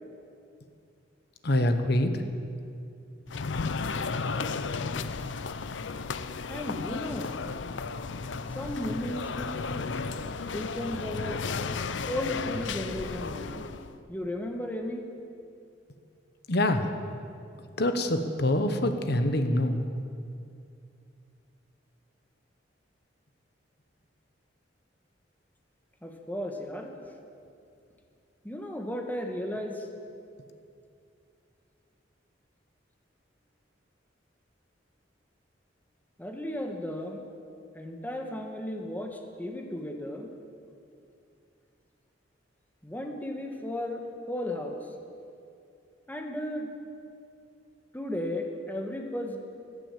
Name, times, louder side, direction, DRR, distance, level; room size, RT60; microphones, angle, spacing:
voice 1, 1.4-2.1 16.5-16.9 17.8-19.8, left 1 dB, 60° left, 8 dB, 1.2 m, -25 dB
sound 1, 3.3-13.9, left 4 dB, 80° left, 0.6 m, -34 dB
voice 2, 4.3-5.2 6.5-7.3 8.5-9.9 10.3-11.4 12.1-13.8 14.1-15.0 26.0-27.1 28.4-29.9 36.2-37.2 37.7-40.3 42.8-44.8 46.1-46.7 47.9-49.4, left 1 dB, 10° left, 2 dB, 1.5 m, -35 dB
16.5 x 11.0 x 7.5 m, 2.5 s
head